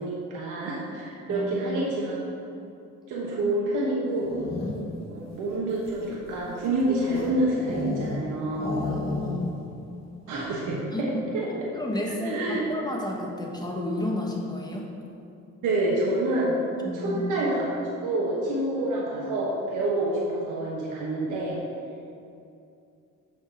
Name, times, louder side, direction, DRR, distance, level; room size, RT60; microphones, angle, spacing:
voice 1, 0.0-2.2 3.1-4.4 5.1-8.8 10.3-11.1 11.3-11.5 12.2-12.7 15.6-16.5 16.9-21.6, right 1 dB, 90° right, -4 dB, 1.1 m, -27 dB
voice 2, 1.3-1.9 8.8-9.5 10.9-11.3 11.7-14.9 16.8-17.2, left 1 dB, 15° left, -1 dB, 1.1 m, -32 dB
sound 1, 4.0-5.0 5.7-8.3 8.5-9.6 9.9-10.0 10.3-10.7, left 2 dB, 60° left, 1.6 m, -33 dB
6.8 x 4.0 x 5.6 m, 2.6 s
cardioid pair, 90°, 30 cm